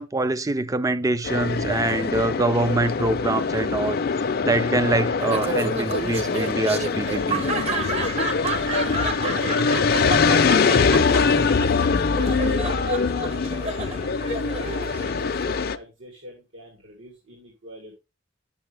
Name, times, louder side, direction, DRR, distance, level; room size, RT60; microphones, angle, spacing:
voice 1, 0.0-4.0 4.4-7.4, right 2 dB, 15° right, 0.4 m, -24 dB
sound 1, 1.2-15.8, left 5 dB, 50° left, 0.5 m, -23 dB
Laughter, 5.2-15.6, right 3 dB, 30° right, 0.8 m, -31 dB
voice 2, 8.1-10.1 10.5-14.5 14.9-18.0, left 1 dB, 85° right, 2.7 m, -41 dB
8.6 x 6.9 x 3.3 m
head